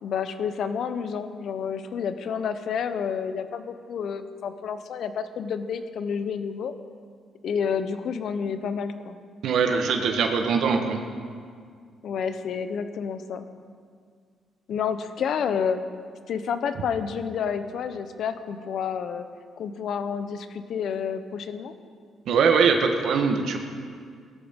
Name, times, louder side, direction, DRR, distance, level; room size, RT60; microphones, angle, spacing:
voice 1, 0.0-6.7 7.4-9.2 12.0-13.4 14.7-15.8 16.3-19.2 19.6-21.7, left 7 dB, 65° left, 10 dB, 0.8 m, -29 dB
voice 2, 9.4-11.0 22.3-23.6, right 5 dB, 75° right, 4 dB, 1.3 m, -22 dB
17.0 x 13.5 x 3.7 m, 2.1 s
cardioid pair, 90°, 0 cm